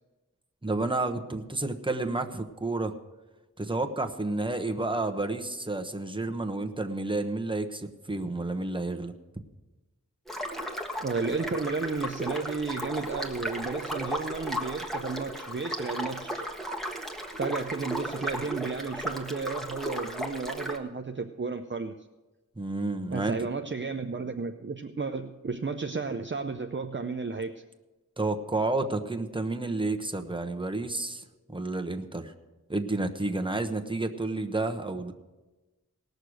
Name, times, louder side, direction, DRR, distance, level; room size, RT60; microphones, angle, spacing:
voice 1, 0.6-2.9 3.6-9.1 22.6-23.3 28.2-32.3 32.7-35.1, right 2 dB, 15° right, 5 dB, 1.0 m, -30 dB
sound 1, 10.3-20.8, equal, ahead, 1.4 m, -35 dB
voice 2, 11.0-16.5 17.4-21.9 23.1-27.6, right 4 dB, 35° right, 5 dB, 0.6 m, -33 dB
18.5 x 6.6 x 6.3 m, 1.1 s
wide cardioid pair, 65°, 32 cm